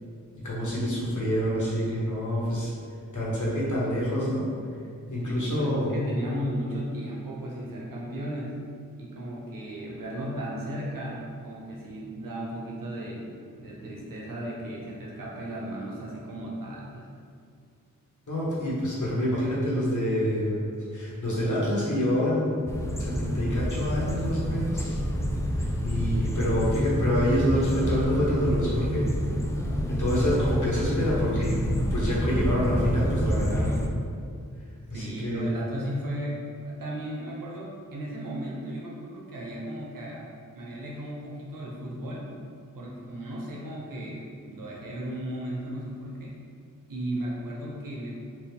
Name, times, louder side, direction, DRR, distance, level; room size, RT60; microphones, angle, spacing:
voice 1, 0.4-2.7 3.1-4.5 5.1-5.9 18.3-20.5 20.9-22.7 23.0-25.0 25.6-29.1 29.9-31.6 31.9-33.8 34.9-35.5, equal, 65° left, -6 dB, 1.3 m, -27 dB
voice 2, 5.2-8.6 9.0-17.1 34.9-40.3 40.5-42.3 42.7-46.3 46.9-48.1, right 1 dB, 85° right, -4 dB, 0.7 m, -35 dB
sound 1, 22.7-33.9, equal, 10° left, 0.4 m, -28 dB
4.3 x 2.4 x 3.5 m, 2.3 s
cardioid pair, 45°, 33 cm